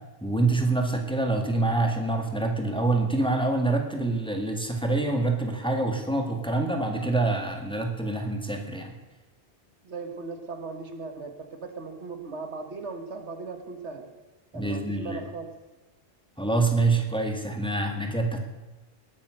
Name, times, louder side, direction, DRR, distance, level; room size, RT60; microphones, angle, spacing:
voice 1, 0.2-8.9 14.5-15.2 16.4-18.4, right 2 dB, 5° left, 3 dB, 1.9 m, -26 dB
voice 2, 9.8-14.1 14.5-15.5, right 4 dB, 85° right, 6 dB, 1.8 m, -38 dB
19.0 x 8.7 x 6.5 m, 1.2 s
omnidirectional pair, 1.1 m